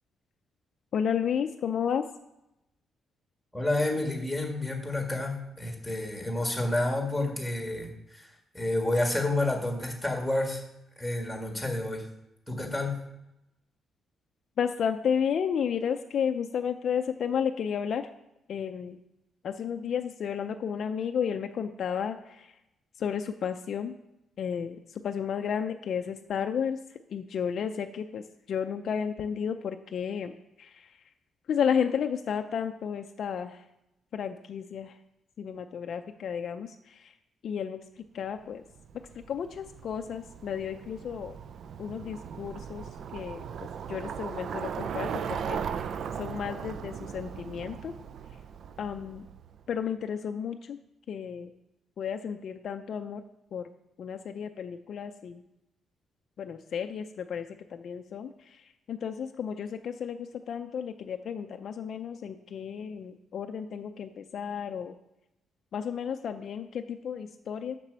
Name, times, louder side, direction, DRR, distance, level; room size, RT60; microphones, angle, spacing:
voice 1, 0.9-2.1 14.6-18.1 18.5-19.0 19.4-22.5 23.0-24.0 24.4-26.8 27.1-31.0 31.5-33.6 34.1-35.0 35.4-37.1 37.4-37.8 38.1-38.6 39.1-41.4 41.8-43.4 43.9-47.9 48.8-49.3 49.7-50.8 51.1-51.5 52.0-53.2 53.5-53.7 54.0-55.4 56.4-65.0 65.7-67.7, left 7 dB, 50° left, 6 dB, 0.4 m, -32 dB
voice 2, 3.5-10.6 11.0-12.0 12.5-13.0, left 2 dB, ahead, 1 dB, 1.6 m, -30 dB
Bicycle, 38.7-49.6, right 7 dB, 50° right, 0.3 m, -38 dB
7.3 x 6.0 x 6.8 m, 0.88 s
cardioid pair, 170°, 0 cm